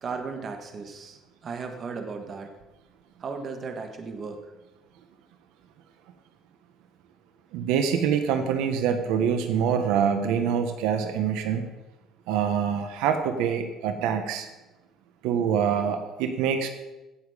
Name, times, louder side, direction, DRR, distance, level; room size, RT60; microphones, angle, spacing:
voice 1, 0.0-2.5 3.2-4.5, right 4 dB, 35° right, 5 dB, 1.6 m, -36 dB
voice 2, 7.5-11.7 12.3-14.5 15.2-16.7, right 7 dB, 90° right, 7 dB, 1.3 m, -25 dB
16.5 x 7.3 x 5.1 m, 1.0 s
cardioid pair, 140°, 0 cm